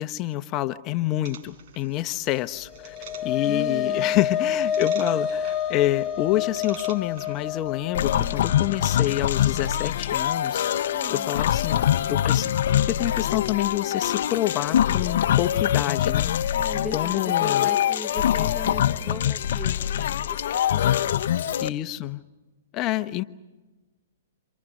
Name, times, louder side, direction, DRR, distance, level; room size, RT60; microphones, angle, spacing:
voice 1, 0.0-3.0 3.2-10.6 11.1-12.5 12.9-16.3 16.9-17.7 21.6-22.2 22.7-23.2, left 15 dB, 35° left, 12 dB, 1.1 m, -27 dB
sound 1, 1.2-7.7, right 7 dB, 55° right, 4.7 m, -48 dB
sound 2, 2.5-11.1, left 8 dB, 15° left, 5.0 m, -29 dB
voice 2, 3.4-4.2 8.1-8.6 10.9-11.3 16.5-20.4 20.7-21.3, right 1 dB, 5° right, 11 dB, 0.9 m, -39 dB
sound 3, 7.9-21.7, left 10 dB, 65° left, 0.9 m, -24 dB
29.0 x 26.5 x 6.5 m, 1.2 s
hypercardioid pair, 130°, 0 cm